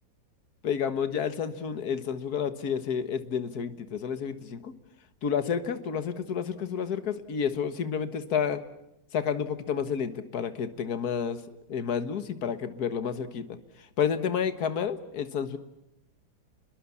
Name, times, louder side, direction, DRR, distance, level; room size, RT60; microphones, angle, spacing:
voice 1, 0.6-4.7 5.2-8.6 9.1-11.4 11.7-13.6 14.0-15.6, left 7 dB, 55° left, 10 dB, 1.9 m, -30 dB
29.5 x 22.0 x 7.2 m, 0.84 s
omnidirectional pair, 2.1 m